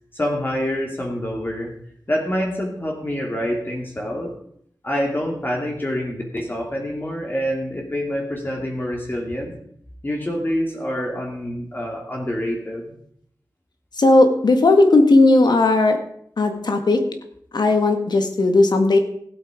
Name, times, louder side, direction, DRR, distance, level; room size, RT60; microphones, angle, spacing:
voice 1, 0.1-1.7 2.1-4.3 4.8-9.5 10.0-12.9, equal, 30° left, -1 dB, 2.5 m, -26 dB
voice 2, 14.0-16.0 16.4-17.0 17.5-19.0, left 2 dB, 75° left, 6 dB, 1.9 m, -16 dB
16.0 x 8.6 x 5.1 m, 0.67 s
wide cardioid pair, 75°, 7 cm